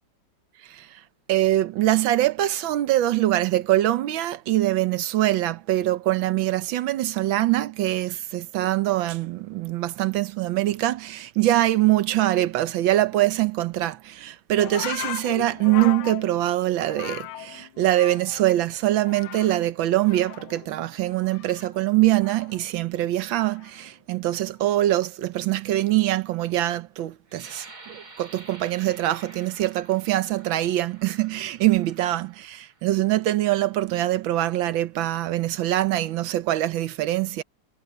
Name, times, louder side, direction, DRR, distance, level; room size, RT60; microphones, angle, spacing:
voice 1, 0.6-1.0 1.3-37.4, right 15 dB, 70° right, 1.4 m, -23 dB
sound 1, 14.6-18.5 18.8-19.7 20.0-22.7 23.5-23.9, left 14 dB, 80° left, 1.6 m, -38 dB
sound 2, 27.3-32.9 33.6-33.8 34.2-34.7, right 3 dB, 45° right, 4.3 m, -49 dB
omnidirectional pair, 2.4 m